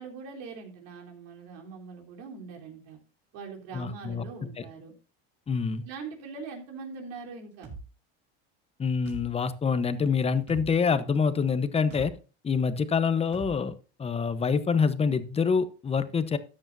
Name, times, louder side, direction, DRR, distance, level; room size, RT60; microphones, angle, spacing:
voice 1, 0.0-3.0 3.3-4.9 5.8-7.7, right 5 dB, 75° right, 1 dB, 3.7 m, -42 dB
voice 2, 3.7-4.2 4.6-4.7 5.5-5.8 8.8-12.1 12.4-16.4, left 5 dB, 20° left, 12 dB, 0.9 m, -26 dB
sound 1, 7.6-7.8 9.1-9.3 10.5-10.7 11.9-12.1 13.3-13.5, right 3 dB, 35° right, 3.9 m, -40 dB
13.5 x 9.9 x 2.7 m, 0.34 s
supercardioid pair, 125°, 31 cm